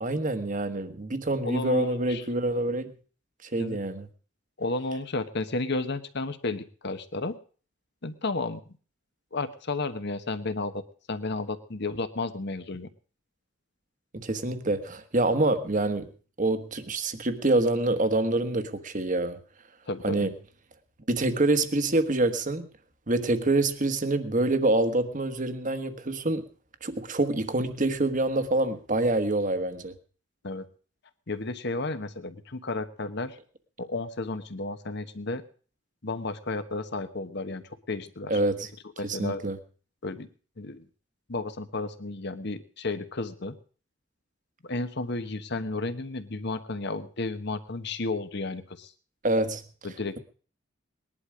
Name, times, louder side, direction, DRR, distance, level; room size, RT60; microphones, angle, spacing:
voice 1, 0.0-2.9 3.4-4.1 14.1-16.1 16.4-19.4 20.0-20.3 21.1-22.7 23.1-26.5 26.8-29.9 38.3-38.7 39.0-39.6 49.2-49.6, right 2 dB, 40° right, 10 dB, 1.3 m, -26 dB
voice 2, 1.4-2.2 3.6-3.8 4.6-7.3 8.0-8.6 9.3-10.8 11.1-12.9 19.9-20.3 30.4-30.7 31.3-33.4 33.8-35.4 36.0-38.4 39.0-39.4 40.0-40.3 40.6-40.9 41.3-43.5 44.6-48.9 49.8-50.2, left 3 dB, 60° left, 10 dB, 1.2 m, -32 dB
19.5 x 11.0 x 4.9 m, 0.41 s
head